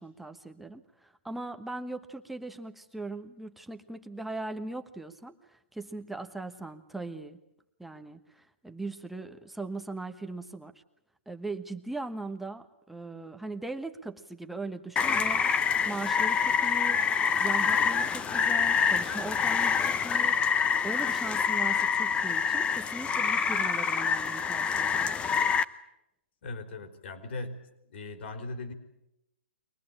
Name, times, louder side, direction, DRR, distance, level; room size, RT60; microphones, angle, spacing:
voice 1, 0.0-7.4 7.8-10.7 11.3-15.4 15.8-25.1, right 2 dB, 5° right, 5 dB, 1.2 m, -39 dB
Rain, 15.0-25.6, left 6 dB, 15° left, 0.8 m, -26 dB
voice 2, 26.4-27.6 27.9-28.7, left 2 dB, 60° left, 7 dB, 3.8 m, -38 dB
23.5 x 19.0 x 8.9 m, 0.85 s
hypercardioid pair, 140°, 7 cm